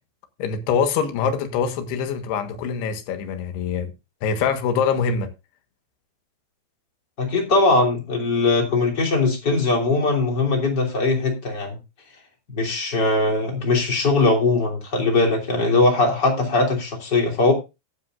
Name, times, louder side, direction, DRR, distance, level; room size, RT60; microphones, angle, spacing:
voice 1, 0.4-3.9 4.2-5.3, left 6 dB, 70° left, 3.3 m, -24 dB
voice 2, 7.2-11.8 12.5-17.5, left 3 dB, 25° left, 2.9 m, -20 dB
16.0 x 9.4 x 2.5 m
omnidirectional pair, 5.3 m